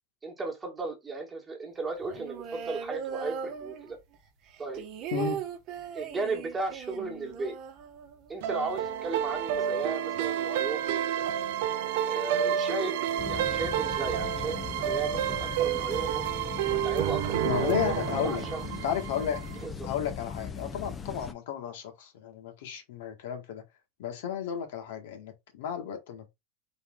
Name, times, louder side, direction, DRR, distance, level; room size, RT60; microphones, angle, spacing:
voice 1, 0.2-4.0 4.6-4.8 5.9-7.6 8.3-11.2 12.0-13.0 13.2-16.2 16.7-18.6 19.6-19.7, right 3 dB, 10° right, 1.4 m, -35 dB
sound 1, 2.0-4.1 4.5-8.4 8.7-8.8 9.1-9.6, right 7 dB, 35° right, 1.0 m, -38 dB
sound 2, 8.4-19.7, right 10 dB, 60° right, 0.5 m, -30 dB
sound 3, 13.2-21.3, left 6 dB, 15° left, 0.5 m, -39 dB
voice 2, 17.4-18.4 18.8-19.4 19.8-23.6 24.0-26.3, left 9 dB, 70° left, 1.5 m, -33 dB
4.2 x 3.3 x 3.7 m
supercardioid pair, 155°, 0 cm